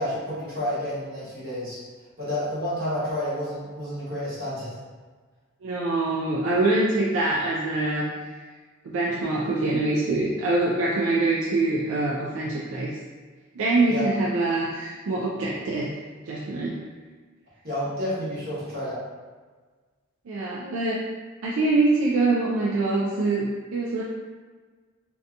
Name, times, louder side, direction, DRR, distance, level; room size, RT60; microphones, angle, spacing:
voice 1, 0.0-1.8 2.2-4.7 13.9-14.1 17.6-19.0, left 1 dB, 45° right, -9 dB, 1.1 m, -30 dB
voice 2, 5.6-8.1 8.8-13.0 13.6-15.9 16.3-16.8 20.3-21.0 21.4-24.0, right 2 dB, 70° right, -4 dB, 0.3 m, -24 dB
2.7 x 2.2 x 2.5 m, 1.4 s
head